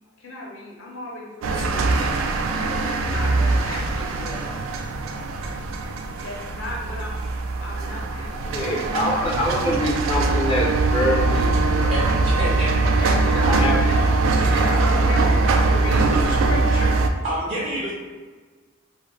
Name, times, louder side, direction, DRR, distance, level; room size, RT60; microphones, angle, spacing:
voice 1, 0.2-4.6 6.2-7.1 7.6-9.1 12.8-17.0, left 1 dB, 90° left, -3 dB, 0.8 m, -34 dB
sound 1, 1.4-17.1, right 3 dB, 80° right, 0.3 m, -22 dB
voice 2, 8.5-11.9 13.4-13.8, left 1 dB, 25° left, -3 dB, 0.3 m, -25 dB
voice 3, 11.9-12.8 17.2-17.9, right 1 dB, 45° right, -8 dB, 0.6 m, -27 dB
2.5 x 2.4 x 3.0 m, 1.4 s
head